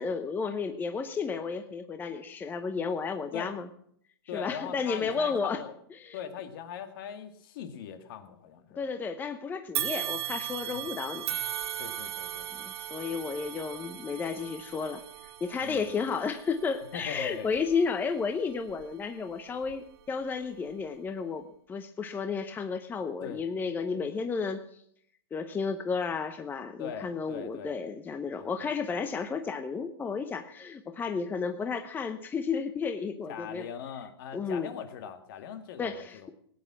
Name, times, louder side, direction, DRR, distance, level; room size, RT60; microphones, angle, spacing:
voice 1, 0.0-3.7 4.3-5.6 6.0-6.2 8.8-11.4 12.5-15.0 15.4-24.6 25.3-33.7 34.3-34.7 35.8-36.3, left 5 dB, 15° left, 8 dB, 0.8 m, -32 dB
voice 2, 4.3-5.7 6.1-8.9 10.7-10.9 11.8-12.7 15.6-15.9 16.9-17.5 23.2-23.4 26.8-27.7 28.4-28.5 33.3-36.3, left 8 dB, 55° left, 9 dB, 1.9 m, -41 dB
sound 1, 9.7-19.1 19.6-19.7 20.7-20.8, right 11 dB, 65° right, 1.4 m, -38 dB
18.5 x 8.9 x 6.1 m, 0.64 s
hypercardioid pair, 130°, 14 cm